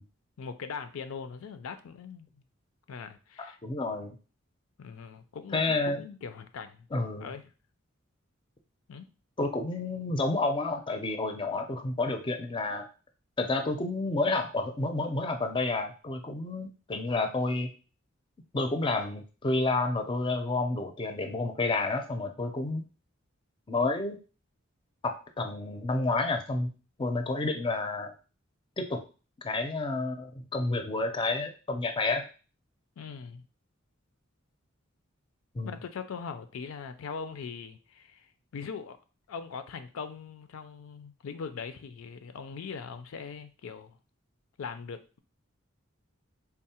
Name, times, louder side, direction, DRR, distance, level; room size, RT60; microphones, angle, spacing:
voice 1, 0.4-2.3 2.9-3.6 4.8-6.9 7.2-7.4 8.9-9.1 33.0-33.5 35.6-38.3 38.5-39.0 39.3-44.0 44.6-45.2, left 5 dB, 80° left, 9 dB, 0.4 m, -41 dB
voice 2, 3.6-4.1 5.5-6.0 6.9-7.3 9.4-12.9 13.4-17.7 18.5-22.8 23.7-24.2 25.0-26.7 27.0-28.1 28.8-29.0 29.4-32.2 35.5-35.8, left 2 dB, 25° left, 5 dB, 0.4 m, -30 dB
3.6 x 2.0 x 4.1 m, 0.34 s
head